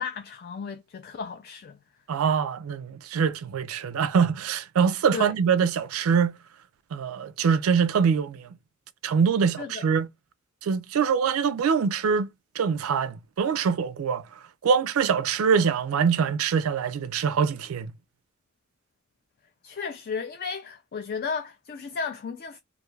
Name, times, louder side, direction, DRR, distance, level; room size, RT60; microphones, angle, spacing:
voice 1, 0.0-1.8 5.1-5.3 9.6-9.9 19.6-22.6, left 5 dB, 45° left, 0.3 m, -34 dB
voice 2, 2.1-6.4 6.9-8.5 9.0-10.1 10.6-12.3 12.6-14.2 14.6-17.9, right 6 dB, 85° right, 0.4 m, -24 dB
2.5 x 2.3 x 3.1 m
head